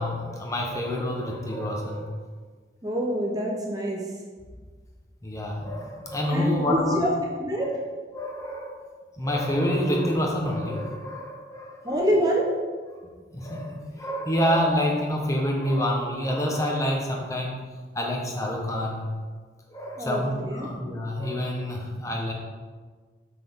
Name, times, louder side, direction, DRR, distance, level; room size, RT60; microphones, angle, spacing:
voice 1, 0.0-2.1 5.2-7.0 7.6-7.7 8.1-8.9 9.2-11.9 13.3-17.6 17.9-19.1 19.7-22.3, equal, 15° left, -1 dB, 0.9 m, -27 dB
voice 2, 2.8-4.0 6.3-7.1 7.4-7.7 11.8-12.5 20.0-20.7, equal, 20° right, -1 dB, 0.7 m, -26 dB
6.1 x 5.8 x 3.6 m, 1.5 s
head